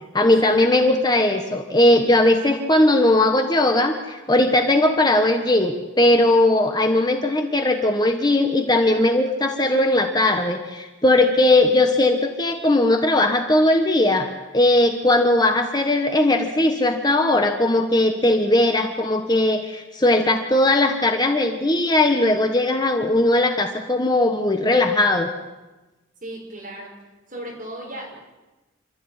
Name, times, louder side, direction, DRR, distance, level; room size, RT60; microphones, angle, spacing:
voice 1, 0.1-25.3, left 1 dB, 20° left, 4 dB, 1.3 m, -19 dB
voice 2, 26.2-26.9 27.3-28.2, right 1 dB, 40° right, -1 dB, 6.4 m, -35 dB
27.0 x 13.0 x 9.8 m, 1.1 s
head